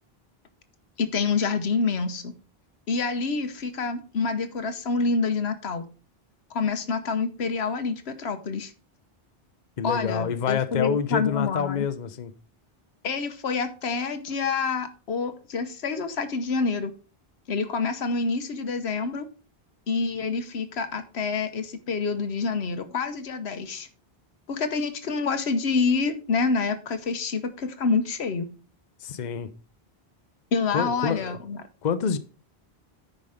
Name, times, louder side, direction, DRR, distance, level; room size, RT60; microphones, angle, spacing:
voice 1, 1.0-2.3 2.9-5.9 6.5-8.7 9.8-11.9 13.0-16.9 17.5-19.3 19.9-23.9 24.5-28.5 30.5-31.6, left 4 dB, 85° left, 1.2 m, -27 dB
voice 2, 9.8-12.3 29.0-29.5 30.7-31.4 31.8-32.2, left 7 dB, 50° left, 0.8 m, -27 dB
9.8 x 5.3 x 5.0 m
omnidirectional pair, 1.0 m